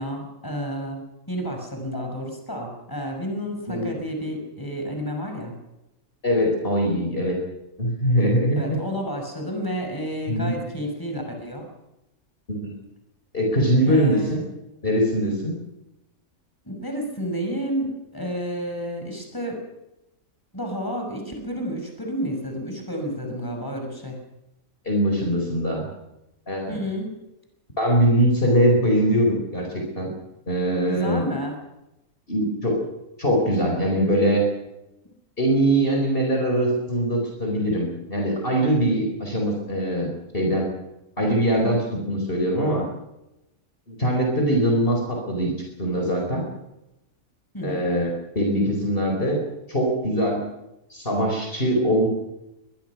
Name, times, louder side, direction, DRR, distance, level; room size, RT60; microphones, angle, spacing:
voice 1, 0.0-5.5 8.6-11.7 13.9-14.3 16.6-19.6 20.5-24.2 26.7-27.1 30.9-31.6 47.5-47.8, equal, 15° left, 2 dB, 6.0 m, -30 dB
voice 2, 3.7-4.0 6.2-7.4 7.8-8.8 10.3-10.6 12.5-12.8 13.3-14.4 14.8-15.6 24.8-25.9 26.5-26.8 27.8-30.1 30.5-31.2 32.3-32.8 33.2-34.4 35.4-40.7 41.2-42.9 43.9-45.5 45.8-46.4 47.6-48.1 48.3-49.4 49.7-50.4 50.9-52.1, equal, 40° left, 1 dB, 4.8 m, -22 dB
22.5 x 22.0 x 6.1 m, 0.92 s
omnidirectional pair, 1.5 m